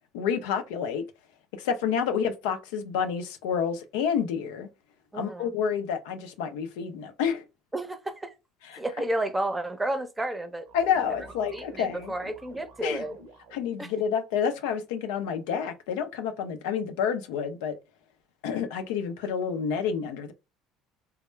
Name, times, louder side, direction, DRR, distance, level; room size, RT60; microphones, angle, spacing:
voice 1, 0.1-1.0 1.5-4.7 5.1-7.4 8.6-8.8 10.7-12.1 12.8-13.1 13.5-17.8 18.4-20.3, left 7 dB, 75° left, 0.5 m, -29 dB
voice 2, 5.1-5.5 7.7-8.3 8.8-10.7 11.5-13.2 13.8-13.9, right 1 dB, 15° right, 0.6 m, -31 dB
sound 1, 10.7-13.8, right 1 dB, 65° right, 0.6 m, -48 dB
3.3 x 2.1 x 3.2 m
hypercardioid pair, 65°, 0 cm